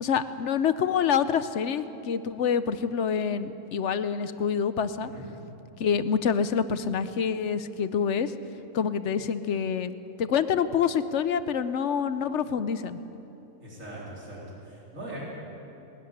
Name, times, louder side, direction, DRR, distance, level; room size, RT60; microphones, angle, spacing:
voice 1, 0.0-5.1 5.8-8.3 8.7-13.0, left 7 dB, 60° left, 12 dB, 1.0 m, -27 dB
voice 2, 13.6-15.2, right 1 dB, 70° right, -6 dB, 4.5 m, -41 dB
20.0 x 13.5 x 9.9 m, 3.0 s
omnidirectional pair, 1.4 m